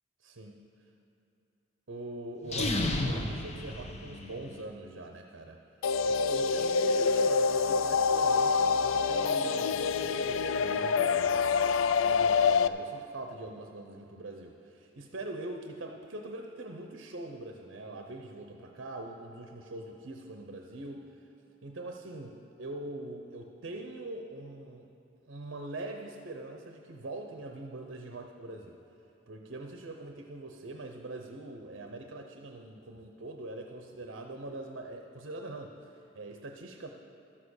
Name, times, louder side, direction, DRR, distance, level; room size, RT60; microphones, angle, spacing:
voice 1, 0.2-0.6 1.9-5.6 6.0-11.6 12.0-21.2 21.6-24.9 25.3-28.8 29.3-36.9, right 2 dB, 65° right, 3 dB, 0.7 m, -43 dB
sound 1, 2.4-4.6, left 2 dB, 35° left, 0.9 m, -32 dB
sound 2, 5.8-12.7, left 5 dB, 75° left, 0.4 m, -26 dB
12.5 x 7.5 x 6.4 m, 2.8 s
head